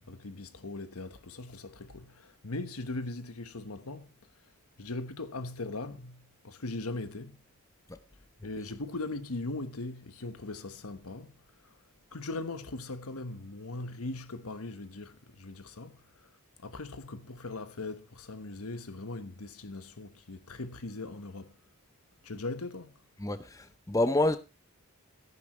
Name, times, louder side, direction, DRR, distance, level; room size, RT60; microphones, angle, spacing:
voice 1, 0.0-4.1 4.8-7.4 8.4-11.3 11.6-11.8 12.1-16.3 16.6-21.6 22.2-22.9, left 2 dB, 80° left, 1.2 m, -39 dB
voice 2, 23.2-24.4, left 2 dB, 15° left, 0.5 m, -27 dB
14.5 x 11.0 x 3.1 m
head